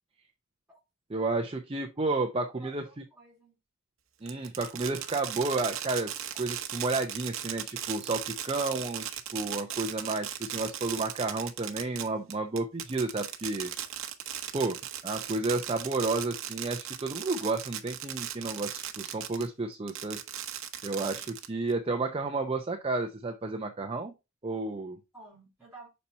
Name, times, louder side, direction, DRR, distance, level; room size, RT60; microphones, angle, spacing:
voice 1, 1.1-2.8 4.2-13.7 14.5-14.8 15.0-20.2 20.8-24.1 24.4-25.0, right 3 dB, 25° right, 0.6 m, -31 dB
voice 2, 2.4-3.6 25.1-25.9, right 3 dB, 5° right, 3.6 m, -52 dB
Fireworks, 4.3-19.5 19.9-21.7, right 10 dB, 70° right, 0.9 m, -37 dB
5.8 x 4.2 x 4.2 m
head